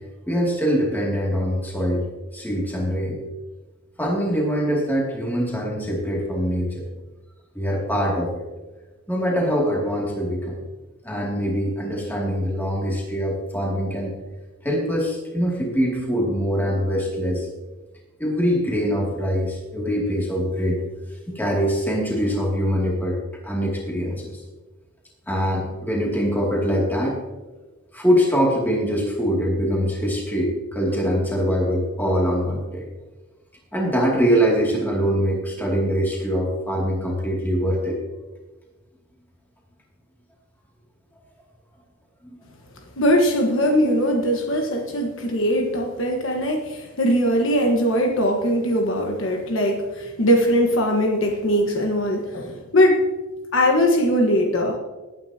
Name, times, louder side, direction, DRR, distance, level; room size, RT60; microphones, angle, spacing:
voice 1, 0.3-2.1 2.3-3.2 4.0-6.8 7.5-8.4 9.1-10.6 11.0-14.1 14.6-17.5 18.2-23.2 23.4-24.4 25.3-27.2 27.9-32.9 33.7-38.0 42.2-42.4, equal, 10° left, -2 dB, 2.5 m, -23 dB
voice 2, 43.0-53.0 53.5-54.8, equal, 60° left, 2 dB, 1.4 m, -20 dB
19.0 x 9.3 x 2.9 m, 1.2 s
head